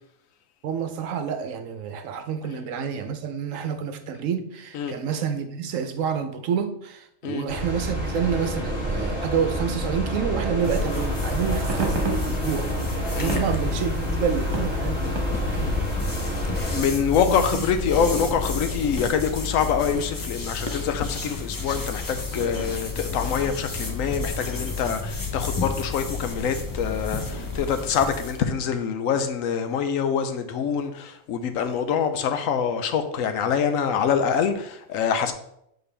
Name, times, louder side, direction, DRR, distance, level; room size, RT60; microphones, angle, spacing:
voice 1, 0.6-12.7 13.2-15.8 17.0-17.6, right 7 dB, 75° right, 1.1 m, -28 dB
sound 1, 7.5-16.8, right 1 dB, 55° left, 2.2 m, -28 dB
sound 2, 10.6-28.4, left 4 dB, 25° left, 0.4 m, -31 dB
sound 3, 11.7-15.9, right 2 dB, 60° right, 1.5 m, -35 dB
voice 2, 16.7-35.3, left 7 dB, 85° left, 1.0 m, -25 dB
6.9 x 4.1 x 3.3 m
omnidirectional pair, 1.4 m